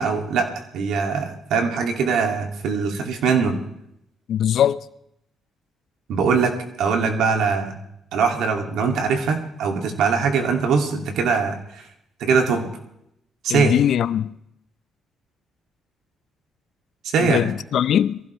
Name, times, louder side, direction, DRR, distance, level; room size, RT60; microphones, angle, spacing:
voice 1, 0.0-3.6 6.1-7.7 8.1-11.8 12.2-12.7 13.4-13.7 17.1-17.4, right 5 dB, 80° right, 2.4 m, -22 dB
voice 2, 4.3-4.8 13.5-14.3 17.2-18.2, left 10 dB, 70° left, 0.6 m, -20 dB
22.5 x 15.5 x 3.3 m
cardioid pair, 90°, 0 cm